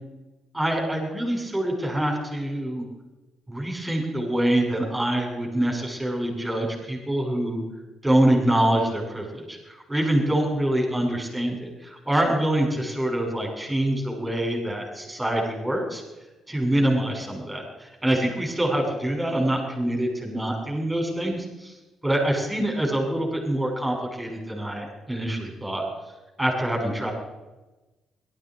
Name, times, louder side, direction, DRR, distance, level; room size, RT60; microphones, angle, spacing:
voice 1, 0.5-2.8 3.5-7.6 8.0-16.0 16.5-21.7 22.0-25.8 26.4-27.1, right 1 dB, 10° right, 0 dB, 6.2 m, -25 dB
18.0 x 13.5 x 4.8 m, 1.1 s
cardioid pair, 90°, 0 cm